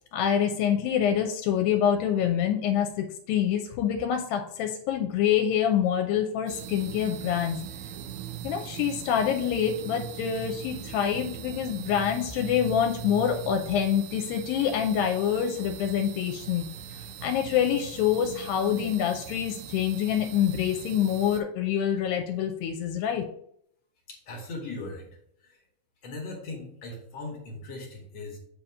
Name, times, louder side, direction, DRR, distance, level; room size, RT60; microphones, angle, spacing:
voice 1, 0.1-7.6 8.4-16.7 16.9-23.2, left 9 dB, 85° left, 4 dB, 2.3 m, -26 dB
sound 1, 6.5-21.4, right 9 dB, 85° right, 2.5 m, -40 dB
voice 2, 24.1-25.1 25.4-25.6 26.0-28.4, left 2 dB, 60° left, -1 dB, 1.8 m, -39 dB
7.6 x 2.8 x 5.5 m, 0.70 s
omnidirectional pair, 4.1 m